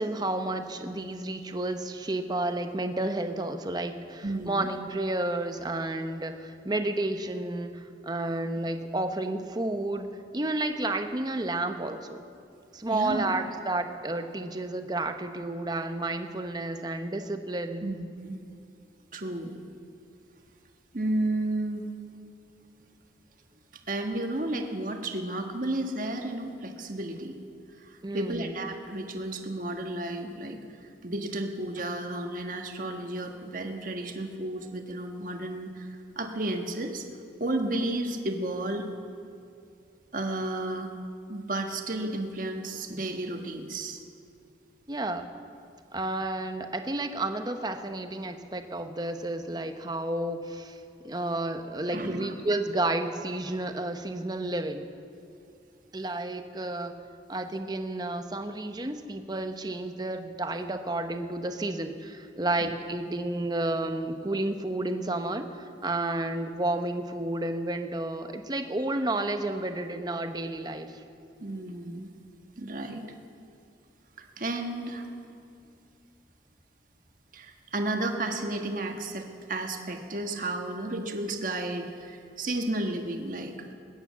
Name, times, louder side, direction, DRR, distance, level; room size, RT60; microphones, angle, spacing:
voice 1, 0.0-10.1 10.3-12.2 12.7-17.8 28.0-28.5 44.9-45.3 45.9-54.9 55.9-56.9 57.3-71.0, right 2 dB, 25° right, 7 dB, 0.8 m, -31 dB
voice 2, 4.2-4.7 12.9-13.3 17.8-18.4 19.1-19.6 20.9-21.9 23.9-27.3 27.8-30.6 31.0-37.1 37.4-38.9 40.1-40.9 41.3-44.0 51.9-52.4 62.6-62.7 71.4-72.1 72.6-73.0 74.4-75.1 77.3-83.5, right 2 dB, 50° right, 4 dB, 1.4 m, -32 dB
20.0 x 9.7 x 7.4 m, 2.5 s
head